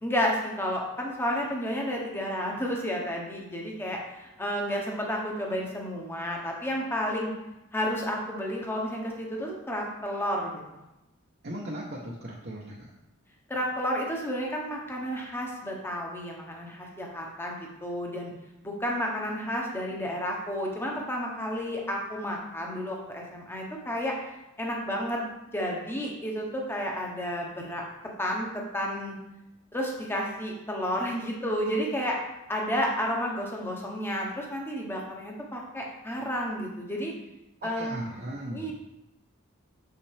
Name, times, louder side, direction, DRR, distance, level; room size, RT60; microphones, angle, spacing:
voice 1, 0.0-7.3 7.7-10.8 13.5-18.3 18.6-24.3 24.6-29.1 29.7-37.1 37.6-38.0 38.5-38.7, equal, 10° left, -1 dB, 1.1 m, -31 dB
voice 2, 11.4-12.9 37.6-38.7, right 1 dB, 50° right, -4 dB, 0.9 m, -38 dB
6.7 x 5.7 x 3.4 m, 0.94 s
head